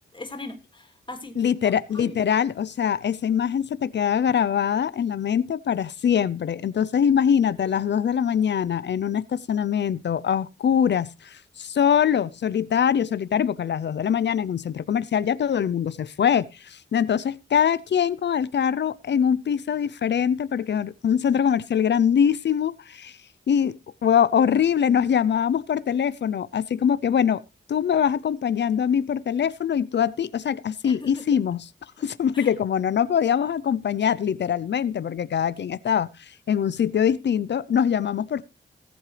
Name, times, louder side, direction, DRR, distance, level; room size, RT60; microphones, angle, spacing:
voice 1, 0.1-1.4 1.6-2.2 30.8-31.3 32.3-32.5, left 2 dB, 25° left, 3.0 m, -40 dB
voice 2, 1.4-23.2 23.5-23.8 24.0-27.4 27.7-31.6 32.0-38.4, left 8 dB, 65° left, 0.6 m, -23 dB
18.5 x 7.9 x 3.3 m
wide cardioid pair, 95°, 19 cm